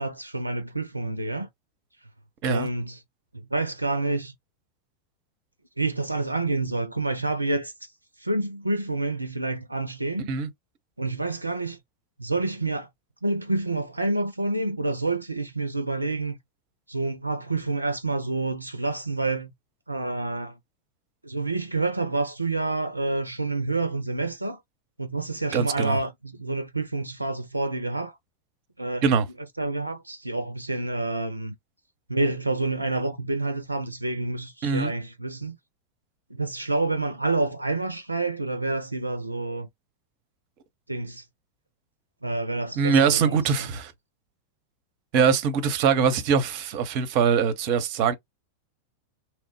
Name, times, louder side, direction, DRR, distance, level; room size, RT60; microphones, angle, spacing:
voice 1, 0.0-1.5 2.5-3.0 3.3-4.3 5.8-7.9 8.2-10.3 11.0-11.8 12.2-12.9 13.2-16.4 16.9-19.5 19.9-20.6 21.2-24.6 25.0-28.2 28.8-29.2 29.6-31.6 32.1-35.6 36.3-39.7 40.9-41.3 42.2-43.4, right 2 dB, 85° right, 0.3 m, -28 dB
voice 2, 25.5-26.0 29.0-29.2 34.6-34.9 42.8-43.9 45.1-48.1, right 6 dB, 45° right, 0.6 m, -22 dB
2.9 x 2.0 x 3.0 m
figure-of-eight pair, 90°, 0 cm